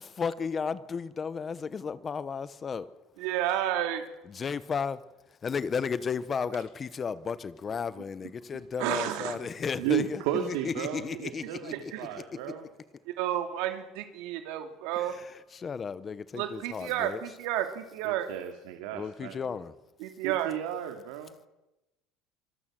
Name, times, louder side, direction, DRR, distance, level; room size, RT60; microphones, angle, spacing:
voice 1, 0.0-2.9 4.3-5.0 5.4-12.1 15.0-17.2 18.9-19.7, left 6 dB, 20° left, 1.0 m, -34 dB
voice 2, 3.2-4.0 8.8-9.3 11.7-12.2 13.1-15.2 16.3-18.3 20.0-20.5, right 12 dB, 65° right, 3.0 m, -31 dB
voice 3, 9.8-12.6 18.0-19.4 20.2-21.3, right 11 dB, 85° right, 2.6 m, -34 dB
25.5 x 22.0 x 7.6 m
cardioid pair, 180°, 0 cm